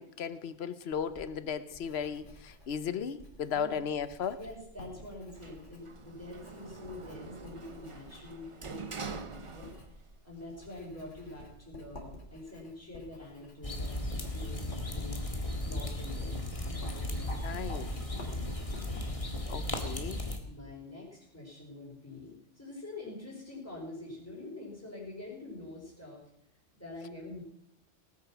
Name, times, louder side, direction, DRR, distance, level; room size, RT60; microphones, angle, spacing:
voice 1, 0.0-4.4 17.4-17.9 19.5-20.2, left 7 dB, 60° left, 13 dB, 1.0 m, -36 dB
Writing, 1.0-20.4, left 1 dB, 80° left, 2.9 m, -52 dB
voice 2, 4.4-9.7 10.2-15.2 15.6-17.6 20.4-26.2 26.8-27.4, left 2 dB, 10° left, -4 dB, 4.8 m, -46 dB
Sliding door, 5.3-10.2 10.5-11.4, right 4 dB, 30° right, 0.7 m, -45 dB
sound 1, 13.6-20.4, left 1 dB, 30° left, 1.7 m, -36 dB
18.5 x 8.5 x 6.0 m, 0.77 s
omnidirectional pair, 1.2 m